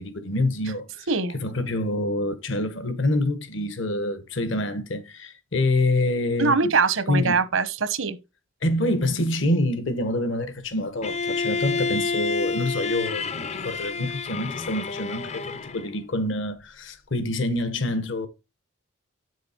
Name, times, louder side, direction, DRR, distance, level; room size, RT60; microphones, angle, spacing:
voice 1, 0.0-1.1 1.3-6.7 7.1-7.4 8.6-18.3, left 1 dB, 70° left, 1.2 m, -26 dB
voice 2, 6.4-8.2, right 4 dB, 80° right, 1.0 m, -22 dB
Bowed string instrument, 11.0-15.9, left 4 dB, 30° left, 0.5 m, -29 dB
8.5 x 6.3 x 4.3 m
head